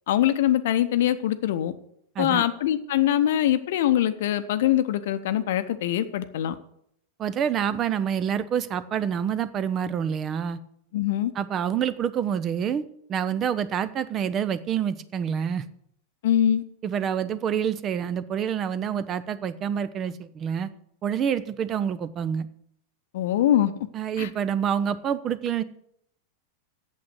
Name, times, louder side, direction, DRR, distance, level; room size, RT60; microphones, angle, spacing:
voice 1, 0.1-1.7 2.2-6.5 10.9-11.3 16.2-16.6 23.1-23.7 24.2-24.3, left 11 dB, 55° left, 12 dB, 0.7 m, -23 dB
voice 2, 7.2-10.6 11.3-15.6 16.8-20.7 21.0-22.5 23.9-25.6, right 8 dB, 30° right, 15 dB, 0.6 m, -27 dB
8.5 x 7.5 x 8.0 m, 0.71 s
figure-of-eight pair, 90°, 0 cm